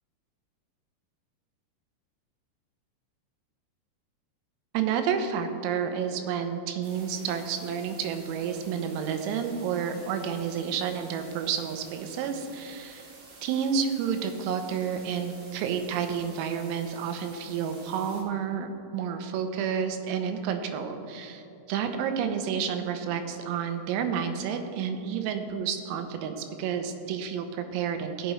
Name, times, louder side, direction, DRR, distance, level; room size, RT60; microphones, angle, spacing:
voice 1, 4.7-13.1 13.4-28.3, right 7 dB, 85° right, 6 dB, 3.5 m, -30 dB
sound 1, 6.8-18.2, right 3 dB, 60° right, 3.6 m, -51 dB
17.0 x 7.6 x 3.1 m, 2.8 s
omnidirectional pair, 5.9 m